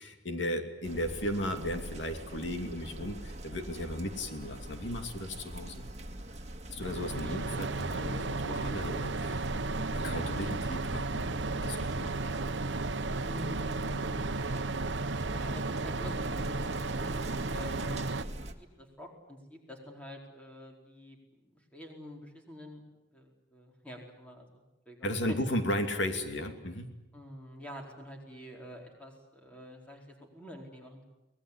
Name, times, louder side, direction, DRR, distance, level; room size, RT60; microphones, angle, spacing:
voice 1, 0.0-5.9 6.7-9.5 10.0-12.1 25.0-26.9, left 1 dB, 90° left, 6 dB, 2.7 m, -35 dB
sound 1, 0.8-18.5, right 1 dB, 40° right, 1.9 m, -43 dB
sound 2, 6.8-18.2, right 3 dB, 85° right, 1.0 m, -34 dB
voice 2, 7.1-7.6 13.2-14.2 15.3-22.8 23.1-25.4 27.1-31.1, equal, 5° left, 1 dB, 4.4 m, -47 dB
23.5 x 19.5 x 9.9 m, 0.99 s
head